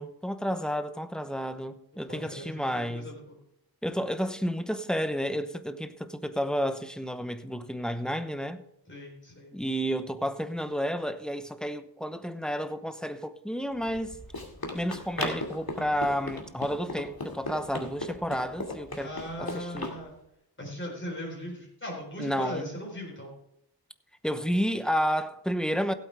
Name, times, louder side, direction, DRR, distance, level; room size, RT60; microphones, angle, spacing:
voice 1, 0.0-3.1 3.8-8.6 9.5-14.2 14.7-19.1 19.4-20.0 22.2-22.7 24.2-25.9, equal, ahead, 0.9 m, -31 dB
voice 2, 1.9-3.4 8.9-9.5 19.0-20.2 20.6-23.3, left 1 dB, 30° left, 4.1 m, -39 dB
Run, 13.8-20.0, left 2 dB, 60° left, 2.4 m, -37 dB
16.0 x 8.5 x 3.5 m
wide cardioid pair, 50°, 40 cm